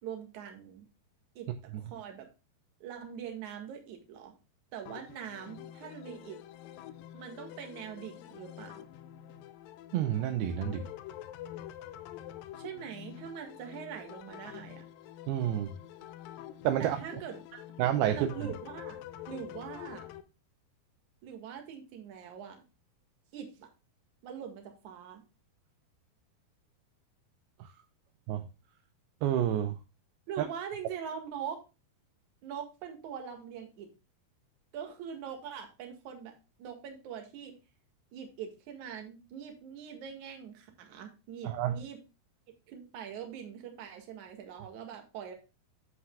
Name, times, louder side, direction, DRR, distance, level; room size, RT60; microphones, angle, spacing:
voice 1, 0.0-0.9 1.4-2.3 2.8-4.3 4.7-6.4 7.1-8.8 12.5-14.9 16.8-17.4 18.1-19.0 19.3-20.1 21.2-22.6 23.3-23.7 24.2-25.2 30.3-31.6 32.4-33.9 34.7-36.3 36.6-37.6 38.1-42.0 42.7-45.4, right 8 dB, 55° right, 2.7 m, -43 dB
sound 1, 4.9-20.2, left 12 dB, 80° left, 2.1 m, -47 dB
voice 2, 9.9-10.9 15.3-15.7 16.6-17.0 17.8-18.3 27.6-27.7 28.3-28.4 29.2-29.8 30.4-30.5 41.4-41.8, right 11 dB, 80° right, 2.4 m, -29 dB
11.0 x 7.7 x 2.3 m
omnidirectional pair, 4.7 m